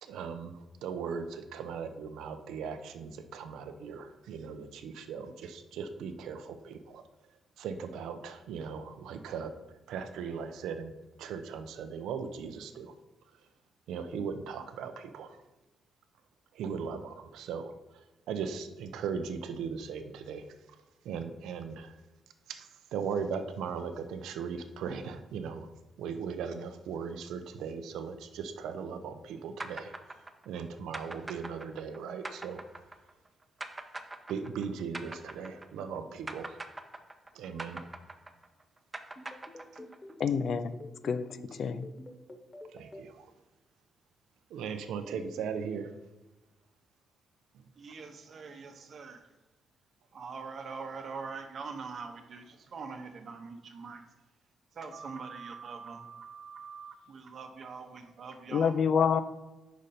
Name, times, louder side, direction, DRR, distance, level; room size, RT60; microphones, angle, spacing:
voice 1, 0.0-7.0 7.6-9.5 9.9-10.9 11.2-12.9 13.9-15.4 16.5-20.4 21.0-22.0 22.5-25.7 26.0-29.9 30.5-32.6 34.3-36.6 37.3-37.8 42.7-43.3 44.5-46.0 47.5-47.6, right 6 dB, 90° right, 8 dB, 0.5 m, -38 dB
sound 1, 29.6-36.0 36.3-40.1, right 2 dB, 20° right, 0.5 m, -43 dB
sound 2, 39.2-43.0, left 1 dB, 20° left, 0.9 m, -47 dB
voice 2, 40.2-40.7 41.0-41.9 58.5-59.2, left 6 dB, 60° left, 13 dB, 0.4 m, -27 dB
voice 3, 47.7-49.4 50.1-54.1 54.7-58.8, right 5 dB, 55° right, 6 dB, 0.8 m, -43 dB
5.1 x 5.1 x 4.2 m, 1.1 s
cardioid pair, 90°, 0 cm